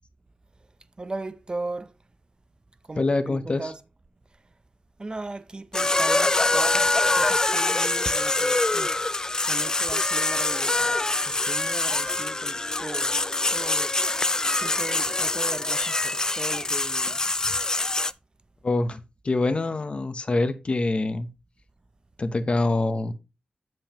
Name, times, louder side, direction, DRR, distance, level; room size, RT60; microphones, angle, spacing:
voice 1, 1.0-1.9 2.8-3.8 5.0-13.2 13.5-13.9 14.5-17.2, right 2 dB, 30° right, 0.5 m, -37 dB
voice 2, 3.0-3.7 18.6-21.3 22.2-23.1, left 2 dB, 40° left, 0.8 m, -25 dB
sound 1, 5.7-18.1, left 2 dB, 25° left, 0.3 m, -24 dB
7.7 x 6.9 x 2.9 m
wide cardioid pair, 85°, 3 cm